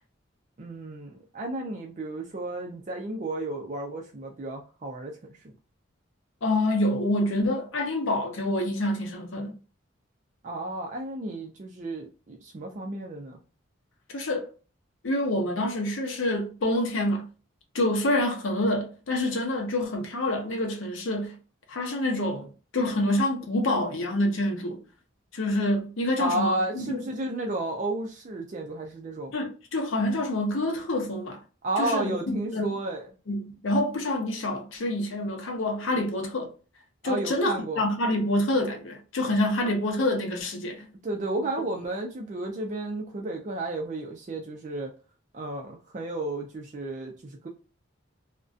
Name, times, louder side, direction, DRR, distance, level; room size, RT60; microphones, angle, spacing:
voice 1, 0.6-5.1 5.4-5.5 10.4-13.4 26.2-29.3 31.6-33.1 37.0-37.9 41.0-44.9 45.3-47.5, right 2 dB, 35° right, 0.3 m, -32 dB
voice 2, 6.4-9.5 14.1-14.5 15.0-17.3 17.7-21.4 21.7-24.8 25.3-27.0 29.3-31.4 31.8-32.7 33.3-36.5 37.0-40.9, left 1 dB, 70° left, 0.6 m, -27 dB
2.5 x 2.1 x 2.3 m
head